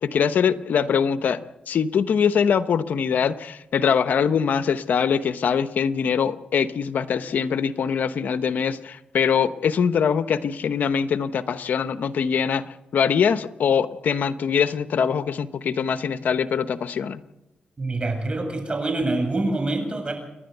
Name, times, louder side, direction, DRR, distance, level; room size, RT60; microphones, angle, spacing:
voice 1, 0.0-17.2, left 7 dB, 80° left, 12 dB, 0.9 m, -23 dB
voice 2, 17.8-20.1, right 2 dB, 35° right, 5 dB, 7.6 m, -25 dB
29.5 x 11.0 x 8.0 m, 0.94 s
cardioid pair, 60°, 3 cm